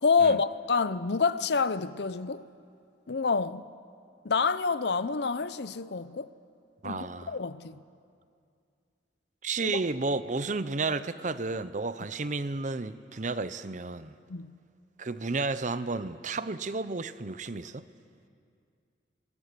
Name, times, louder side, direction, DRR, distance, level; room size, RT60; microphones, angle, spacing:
voice 1, 0.0-2.4 3.1-3.6 4.2-6.3 6.8-7.8 9.6-9.8 14.3-14.5, left 5 dB, 65° left, 0.6 m, -27 dB
voice 2, 6.8-7.4 9.4-14.1 15.0-17.8, right 3 dB, 40° right, 0.7 m, -32 dB
26.0 x 22.5 x 6.8 m
head